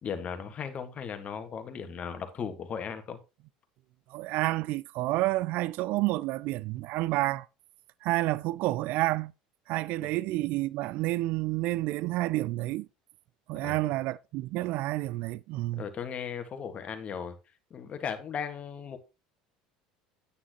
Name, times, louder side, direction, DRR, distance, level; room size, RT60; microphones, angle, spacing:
voice 1, 0.0-3.2 10.0-10.1 13.6-13.8 15.8-17.3 17.7-19.0, left 7 dB, 40° left, 1.7 m, -37 dB
voice 2, 4.1-7.5 8.0-9.3 9.7-12.9 13.5-15.8, right 18 dB, 55° right, 0.3 m, -29 dB
9.6 x 8.6 x 3.0 m
figure-of-eight pair, 70°, 3 cm